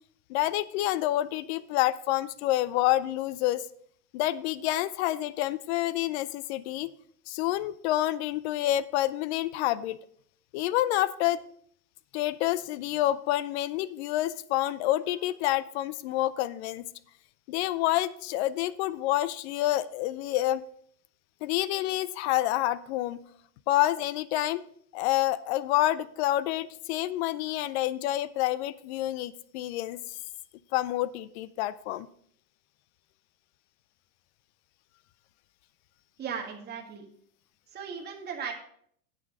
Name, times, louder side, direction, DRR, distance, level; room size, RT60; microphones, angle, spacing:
voice 1, 0.3-3.7 4.1-6.9 7.3-10.0 10.5-11.4 12.1-16.9 17.5-20.6 21.4-23.2 23.7-24.6 24.9-30.2 30.7-32.1, left 14 dB, 45° left, 18 dB, 0.5 m, -28 dB
voice 2, 36.2-37.0 37.7-38.5, right 7 dB, 20° right, 1 dB, 1.6 m, -37 dB
8.6 x 6.2 x 4.9 m, 0.64 s
hypercardioid pair, 125°, 46 cm